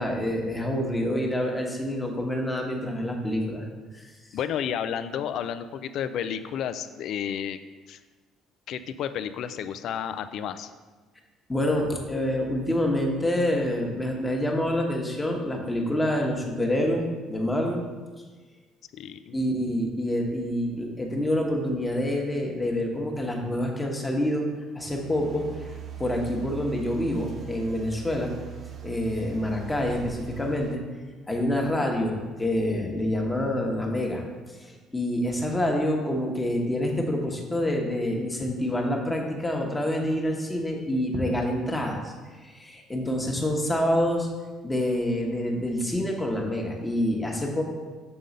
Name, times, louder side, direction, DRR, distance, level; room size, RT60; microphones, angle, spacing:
voice 1, 0.0-3.6 3.9-4.0 11.5-17.8 19.3-24.5 24.7-25.5 26.0-28.3 28.8-30.8 31.3-34.2 34.6-42.1 42.4-44.3 44.6-47.6, left 1 dB, 10° left, 0 dB, 1.1 m, -27 dB
voice 2, 4.3-7.6 7.9-8.0 8.7-10.7 18.9-19.4, left 9 dB, 65° left, 12 dB, 0.3 m, -31 dB
sound 1, 24.9-30.8, right 10 dB, 45° right, 0.5 m, -41 dB
6.8 x 3.8 x 5.2 m, 1.3 s
cardioid pair, 110°, 0 cm